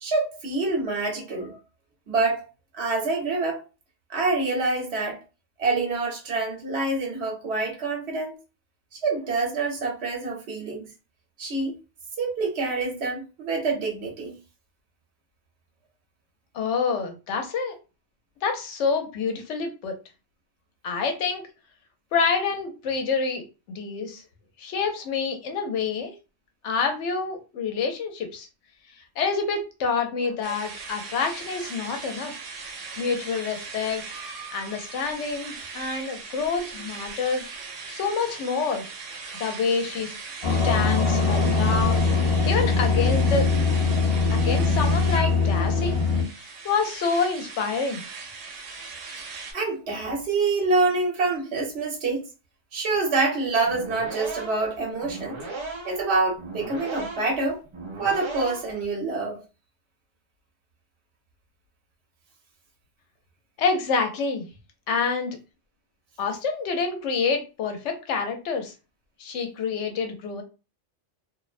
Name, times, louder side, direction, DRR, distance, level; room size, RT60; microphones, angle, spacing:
voice 1, 0.0-1.6 2.1-2.5 2.7-3.6 4.1-5.2 5.6-8.4 8.9-10.9 11.4-11.8 12.2-14.4 30.5-30.6 49.5-52.3 52.7-55.4 55.8-57.6 58.0-59.4, right 3 dB, 65° right, 1.1 m, -26 dB
voice 2, 16.5-17.7 18.4-20.0 20.8-21.4 22.1-23.4 23.7-24.2 24.6-26.1 26.6-28.5 29.2-32.3 33.0-34.0 34.5-37.5 37.9-38.9 39.4-40.1 40.5-43.5 44.3-46.0 46.6-48.0 63.6-64.5 64.9-65.4 66.2-68.7 69.2-70.4, left 5 dB, 80° left, 0.9 m, -27 dB
sound 1, 30.4-49.5, right 4 dB, 85° right, 1.0 m, -39 dB
sound 2, 40.4-46.2, left 4 dB, 35° left, 0.6 m, -22 dB
sound 3, 53.6-58.9, right 3 dB, 45° right, 0.4 m, -37 dB
2.5 x 2.0 x 2.4 m
omnidirectional pair, 1.2 m